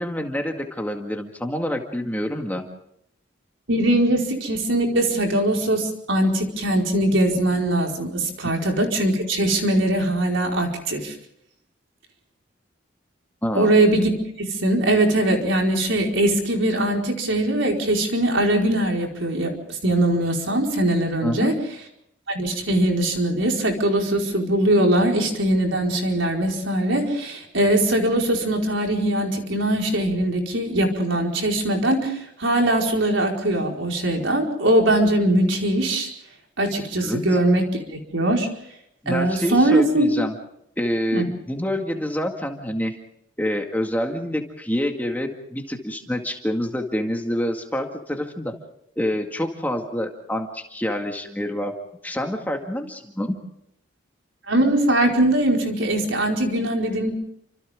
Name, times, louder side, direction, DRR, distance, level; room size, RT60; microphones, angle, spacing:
voice 1, 0.0-2.6 13.4-13.8 21.2-21.5 37.0-37.2 39.0-40.3 40.8-42.9 43.4-48.5 49.0-51.7 52.0-53.4, equal, 10° left, 3 dB, 2.0 m, -27 dB
voice 2, 3.7-11.1 13.5-14.1 14.4-21.5 22.3-36.1 36.6-38.5 39.1-40.1 41.1-41.3 54.5-57.1, right 1 dB, 85° right, 1 dB, 4.8 m, -21 dB
30.0 x 26.0 x 3.7 m, 0.74 s
head